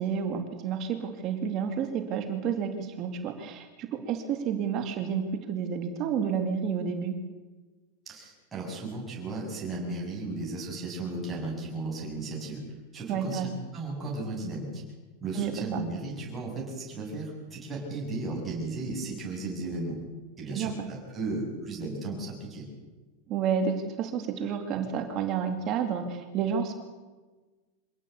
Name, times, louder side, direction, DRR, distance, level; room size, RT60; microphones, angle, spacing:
voice 1, 0.0-7.1 13.1-13.5 15.4-15.8 20.5-20.7 23.3-26.7, right 7 dB, 30° right, 6 dB, 2.3 m, -30 dB
voice 2, 8.1-12.6 12.9-14.8 15.2-20.0 20.4-22.7, right 2 dB, 10° right, -3 dB, 7.1 m, -35 dB
26.0 x 17.5 x 8.4 m, 1.3 s
supercardioid pair, 175°, 0 cm